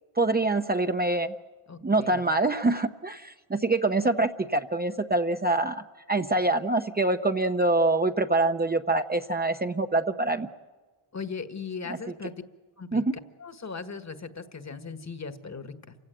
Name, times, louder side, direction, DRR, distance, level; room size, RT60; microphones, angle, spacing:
voice 1, 0.2-1.3 1.8-10.5 12.9-13.2, right 2 dB, 20° right, 6 dB, 0.8 m, -25 dB
voice 2, 1.7-2.2 11.1-12.3 12.8-13.0 13.4-16.0, left 5 dB, 35° left, 9 dB, 1.7 m, -38 dB
28.5 x 16.5 x 9.0 m, 1.3 s
cardioid pair, 100°, 48 cm